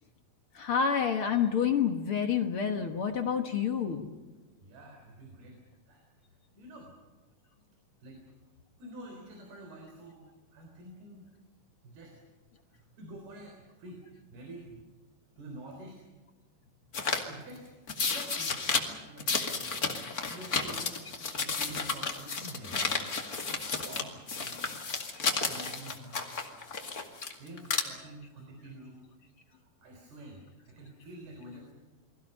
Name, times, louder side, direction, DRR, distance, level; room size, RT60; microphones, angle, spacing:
voice 1, 0.5-4.1, left 7 dB, 65° left, 5 dB, 1.3 m, -28 dB
voice 2, 4.6-5.6 5.9-6.0 6.6-6.9 8.0-8.2 8.8-10.2 10.5-11.3 11.8-12.1 13.0-14.0 14.3-14.7 15.4-16.0 17.2-17.7 18.1-21.1 21.4-23.1 23.8-24.6 25.2-26.2 27.4-29.0 29.8-30.4 30.7-31.7, right 1 dB, 90° right, 2 dB, 5.7 m, -48 dB
sound 1, 16.9-17.2 17.9-18.8 19.2-24.0 24.3-27.3 27.6-27.8, left 4 dB, 30° left, 2.0 m, -32 dB
30.0 x 21.5 x 5.5 m, 1.3 s
omnidirectional pair, 4.3 m